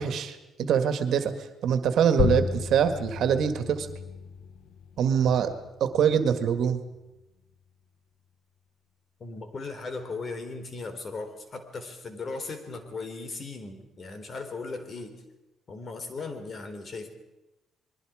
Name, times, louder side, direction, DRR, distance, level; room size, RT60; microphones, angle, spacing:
voice 1, 0.0-1.3 1.6-3.9 5.0-5.5 5.8-6.8, right 8 dB, 70° right, 9 dB, 1.9 m, -24 dB
sound 1, 2.2-7.3, left 8 dB, 75° left, 1.1 m, -34 dB
voice 2, 9.2-15.2 15.7-17.1, left 3 dB, 45° left, 8 dB, 3.6 m, -37 dB
28.0 x 21.5 x 5.0 m, 0.99 s
cardioid pair, 90°, 0 cm